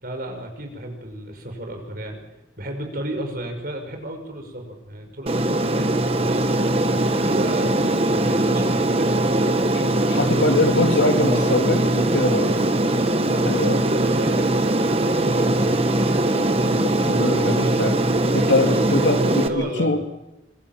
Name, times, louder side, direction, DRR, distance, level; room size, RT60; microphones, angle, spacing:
voice 1, 0.0-2.2 2.6-6.3 6.9-9.8 11.1-11.6 12.1-12.5 13.1-15.8 18.3-18.8 19.2-20.0, right 1 dB, 50° right, 4 dB, 5.5 m, -33 dB
Aircraft, 5.3-19.5, right 1 dB, 30° right, 1.5 m, -21 dB
voice 2, 9.7-12.4 13.3-13.8 16.3-18.0 18.3-20.1, left 2 dB, 80° left, 5 dB, 2.9 m, -23 dB
26.0 x 22.5 x 7.4 m, 0.94 s
head